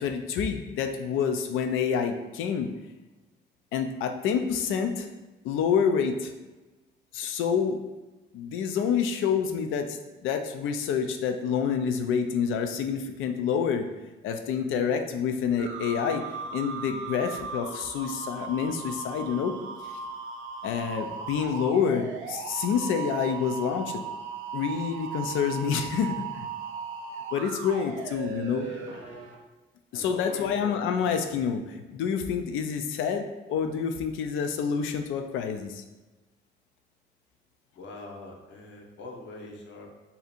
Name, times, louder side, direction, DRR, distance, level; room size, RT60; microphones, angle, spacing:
voice 1, 0.0-2.7 3.7-5.2 5.4-6.3 7.1-7.8 8.3-10.0 10.2-13.9 14.2-16.2 16.5-19.6 20.6-24.0 24.5-26.5 27.3-28.7 29.9-35.8, left 7 dB, 85° left, 6 dB, 0.4 m, -28 dB
sound 1, 15.6-29.3, right 5 dB, 90° right, 0.5 m, -37 dB
voice 2, 28.6-29.2 29.9-31.4 37.7-39.9, left 2 dB, 70° left, 0 dB, 0.8 m, -44 dB
2.7 x 2.5 x 4.1 m, 1.1 s
cardioid pair, 90°, 20 cm